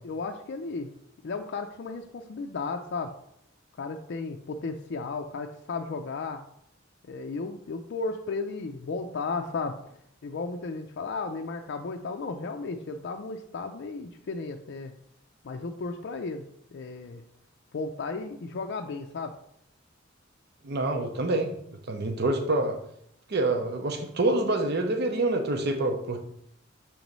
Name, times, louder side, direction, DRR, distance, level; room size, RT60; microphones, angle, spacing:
voice 1, 0.0-0.9 1.2-3.1 3.8-6.4 7.0-9.8 10.2-14.9 15.4-16.4 16.7-17.2 17.7-19.3, left 4 dB, 60° left, 4 dB, 0.4 m, -34 dB
voice 2, 20.6-21.5 21.9-22.8 23.3-26.2, right 2 dB, 55° right, 4 dB, 0.7 m, -26 dB
7.0 x 3.0 x 5.2 m, 0.71 s
head